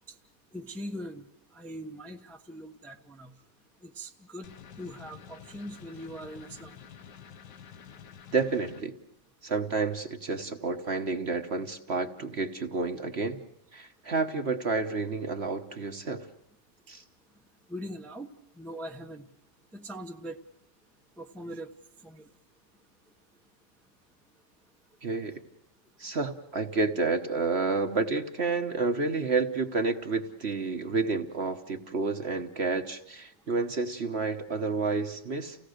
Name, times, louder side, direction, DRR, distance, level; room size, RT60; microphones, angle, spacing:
voice 1, 0.5-1.3 1.5-3.3 3.8-4.5 4.8-6.8 17.7-18.3 18.6-19.3 19.7-20.4 21.2-21.7 22.0-22.3, equal, ahead, 4 dB, 0.7 m, -41 dB
sound 1, 4.4-8.8, left 8 dB, 75° left, 1.7 m, -49 dB
voice 2, 8.3-8.9 9.4-13.4 13.7-16.3 16.9-17.0 25.0-25.4 26.0-35.6, right 4 dB, 40° right, 7 dB, 1.2 m, -30 dB
29.5 x 17.0 x 6.5 m, 0.80 s
omnidirectional pair, 1.9 m